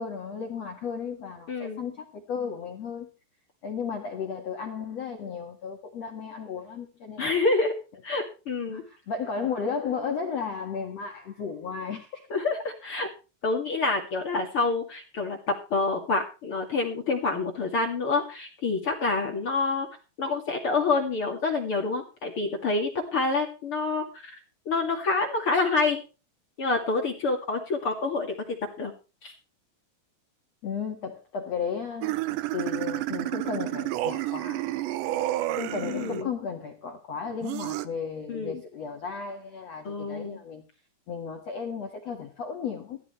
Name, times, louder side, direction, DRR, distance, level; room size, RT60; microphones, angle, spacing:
voice 1, 0.0-3.1 3.6-7.3 8.7-12.2 30.6-32.2 32.5-34.6 35.6-40.6 41.1-43.0, left 6 dB, 75° left, 1.5 m, -34 dB
voice 2, 1.5-1.8 7.2-7.8 8.0-8.8 12.3-13.1 13.4-19.9 20.2-24.4 24.7-26.0 26.6-28.9 29.2-29.3 35.8-36.3 38.3-38.6 39.8-40.4, left 3 dB, 45° left, 1.8 m, -27 dB
sound 1, 32.0-36.2 37.4-37.9, right 16 dB, 75° right, 2.8 m, -30 dB
14.5 x 14.0 x 3.2 m
omnidirectional pair, 5.7 m